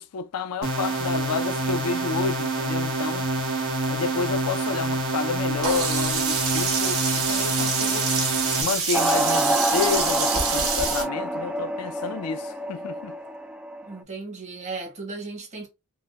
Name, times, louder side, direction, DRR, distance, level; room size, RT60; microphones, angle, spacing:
voice 1, 0.0-3.3 3.9-8.1 8.6-13.1, left 5 dB, 80° left, 0.4 m, -30 dB
sound 1, 0.6-8.6, right 2 dB, 60° right, 1.1 m, -27 dB
Sink (filling or washing), 5.6-11.0, right 5 dB, 80° right, 1.5 m, -26 dB
sound 2, 8.9-13.9, right 1 dB, 5° right, 0.3 m, -27 dB
voice 2, 13.8-15.7, right 3 dB, 30° right, 1.3 m, -36 dB
4.9 x 2.1 x 2.3 m
head